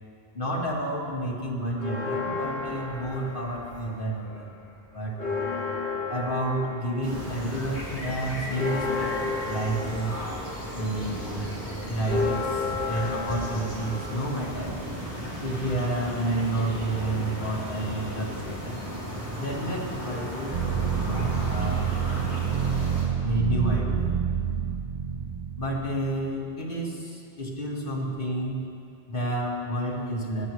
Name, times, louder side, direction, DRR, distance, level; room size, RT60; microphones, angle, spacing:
voice 1, 0.3-4.5 4.9-5.5 6.1-10.2 10.7-11.5 11.8-14.8 15.4-18.8 19.4-21.9 23.2-24.2 25.6-28.6 29.1-30.5, right 1 dB, 60° left, -2 dB, 1.9 m, -30 dB
Church bell, 1.8-4.1 4.5-4.6 4.9-15.0, left 4 dB, 75° left, 2.9 m, -33 dB
sound 1, 7.0-23.0, equal, 20° right, 3.0 m, -35 dB
sound 2, 20.5-26.3, right 8 dB, 45° right, 0.6 m, -28 dB
18.5 x 12.0 x 3.1 m, 2.4 s
omnidirectional pair, 1.0 m